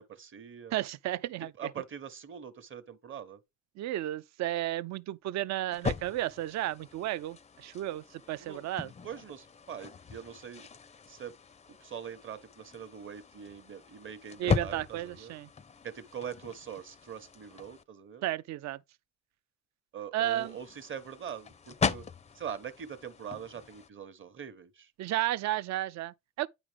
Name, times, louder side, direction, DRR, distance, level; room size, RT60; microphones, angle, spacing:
voice 1, 0.0-0.8 1.6-3.4 8.4-8.6 9.0-10.7 11.1-11.3 11.8-15.3 15.8-18.2 19.9-22.0 22.3-24.9, right 8 dB, 40° right, 0.9 m, -43 dB
voice 2, 0.7-1.5 3.8-8.9 14.4-15.5 18.2-18.8 20.1-20.6 25.0-26.5, right 14 dB, 65° right, 0.4 m, -33 dB
sound 1, 5.7-17.8 20.2-23.9, left 6 dB, 20° left, 0.4 m, -39 dB
8.9 x 5.0 x 3.3 m
cardioid pair, 90°, 30 cm